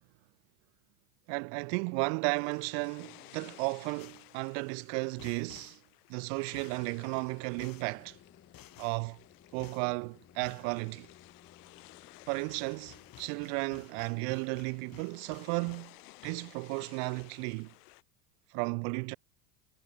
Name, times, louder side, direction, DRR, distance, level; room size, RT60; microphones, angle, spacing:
voice 1, 1.3-5.8 6.1-8.2 8.8-9.2 9.5-11.1 12.3-15.9 16.2-17.7 18.5-19.2, right 40 dB or more, 55° right, 0.5 m, -34 dB
sound 1, 2.2-18.0, left 23 dB, 75° left, 1.6 m, -57 dB
sound 2, 4.0-4.4 5.2-5.8 6.5-6.9 7.6-7.9 8.5-9.1 9.6-9.9 10.4-10.7 12.1-12.2 12.5-16.0 16.2-16.8 17.2-17.6, left 13 dB, 45° left, 5.8 m, -55 dB
sound 3, 6.7-13.3, left 8 dB, 30° left, 1.9 m, -59 dB
hypercardioid pair, 95°, 47 cm